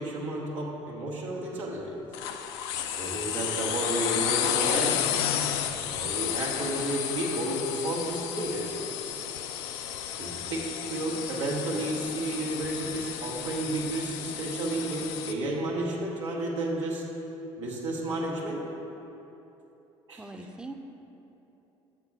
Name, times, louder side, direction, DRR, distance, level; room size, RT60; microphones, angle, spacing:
voice 1, 0.0-2.0 3.0-5.0 5.8-8.8 10.2-17.0 17.6-18.6 20.1-20.2, right 2 dB, 85° right, -5 dB, 1.1 m, -32 dB
sound 1, 2.1-15.3, left 9 dB, 70° left, 0.4 m, -32 dB
voice 2, 20.2-20.7, right 2 dB, 5° right, 6 dB, 0.6 m, -41 dB
7.3 x 5.8 x 4.6 m, 3.0 s
hypercardioid pair, 60°, 15 cm